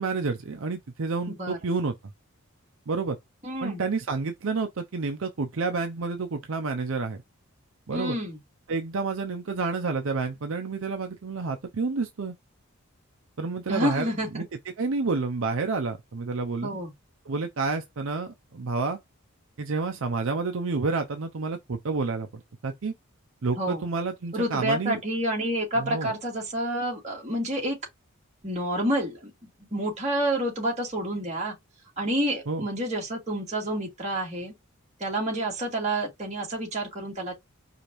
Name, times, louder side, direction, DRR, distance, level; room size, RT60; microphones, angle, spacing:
voice 1, 0.0-1.9 2.9-3.2 3.6-7.2 7.9-8.2 8.7-12.3 13.4-14.5 14.8-16.7 17.3-19.0 19.6-22.3 22.6-22.9 23.4-25.0 25.8-26.1 32.5-32.6, right 4 dB, 65° right, 0.6 m, -29 dB
voice 2, 1.3-1.6 3.4-3.8 7.9-8.4 13.7-14.4 16.6-16.9 23.6-23.8 24.3-27.8 28.4-29.3 29.6-31.5 32.0-34.5 35.0-37.3, right 1 dB, 30° right, 2.1 m, -29 dB
4.9 x 2.5 x 3.0 m
head